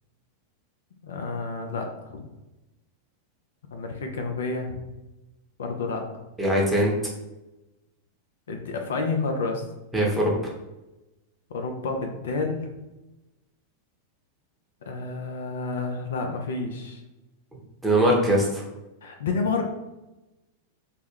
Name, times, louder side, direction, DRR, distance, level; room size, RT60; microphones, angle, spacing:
voice 1, 1.0-2.2 3.7-4.8 5.6-6.0 8.5-9.6 11.5-12.6 14.8-17.0 19.0-19.6, left 3 dB, 70° left, 4 dB, 0.3 m, -29 dB
voice 2, 6.4-6.9 9.9-10.3 17.8-18.6, right 1 dB, 10° right, -3 dB, 0.8 m, -21 dB
2.2 x 2.1 x 3.3 m, 1.0 s
figure-of-eight pair, 90°, 0 cm